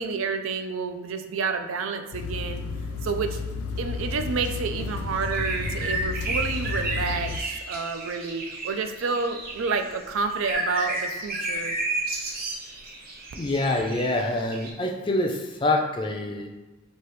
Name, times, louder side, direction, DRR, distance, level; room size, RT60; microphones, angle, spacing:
voice 1, 0.0-2.6 3.0-3.4 3.8-11.7, right 4 dB, 70° right, 7 dB, 0.4 m, -29 dB
sound 1, 2.1-7.4, left 4 dB, 90° left, 0.4 m, -32 dB
sound 2, 5.2-9.9 10.2-14.7, right 2 dB, 45° right, 0.8 m, -32 dB
voice 2, 13.3-16.5, left 2 dB, 25° left, 2 dB, 0.4 m, -26 dB
4.5 x 2.8 x 3.1 m, 1.1 s
head